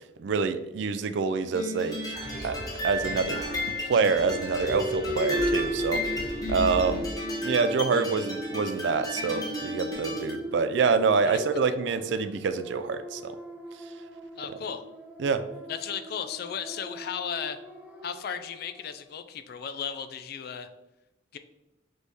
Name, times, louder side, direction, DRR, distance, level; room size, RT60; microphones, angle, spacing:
voice 1, 0.0-2.1 2.4-2.6 2.8-3.4 3.8-7.1 7.4-13.3 15.2-15.5, right 5 dB, 65° right, 11 dB, 0.3 m, -26 dB
sound 1, 1.5-10.4, left 1 dB, 20° left, 0.8 m, -34 dB
sound 2, 2.1-7.2, equal, 35° right, 1.2 m, -40 dB
sound 3, 4.6-18.8, equal, 10° right, 0.5 m, -37 dB
voice 2, 14.4-14.8 15.7-17.6 18.0-20.7 21.3-21.4, left 7 dB, 50° left, 10 dB, 0.3 m, -35 dB
4.0 x 3.2 x 3.4 m, 0.95 s
head